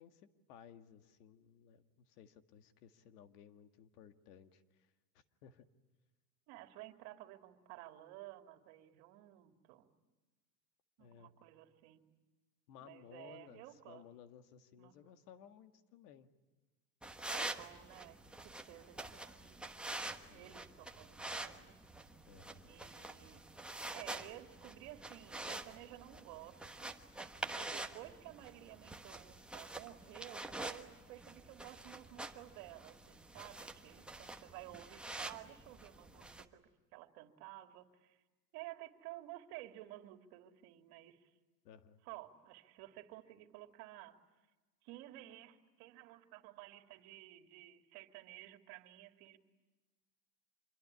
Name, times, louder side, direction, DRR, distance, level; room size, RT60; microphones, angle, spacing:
voice 1, 0.0-5.7 11.0-11.3 12.7-16.3 20.3-20.6 22.3-22.7 41.6-42.0, left 8 dB, 75° left, 8 dB, 2.1 m, -59 dB
voice 2, 6.5-9.9 11.0-12.0 12.8-14.0 14.8-15.0 17.3-19.7 20.3-21.8 22.6-23.5 23.9-27.0 27.5-36.6 36.9-38.2 38.5-41.3 42.0-44.2 44.8-49.4, right 15 dB, 55° right, 6 dB, 2.7 m, -53 dB
sound 1, 17.0-36.4, right 2 dB, ahead, 1.2 m, -47 dB
26.5 x 22.5 x 9.9 m, 1.2 s
supercardioid pair, 140°, 47 cm